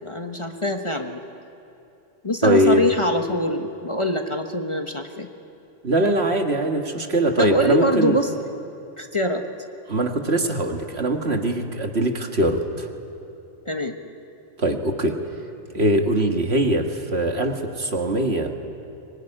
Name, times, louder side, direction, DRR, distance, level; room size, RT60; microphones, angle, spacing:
voice 1, 0.0-1.2 2.2-5.3 7.4-8.3 9.0-9.4 13.6-13.9, left 1 dB, 25° left, 4 dB, 1.2 m, -24 dB
voice 2, 2.4-2.8 5.8-8.2 9.9-12.9 14.6-15.2 15.7-18.5, right 1 dB, 60° right, 4 dB, 2.0 m, -22 dB
24.0 x 21.5 x 10.0 m, 2.8 s
omnidirectional pair, 1.2 m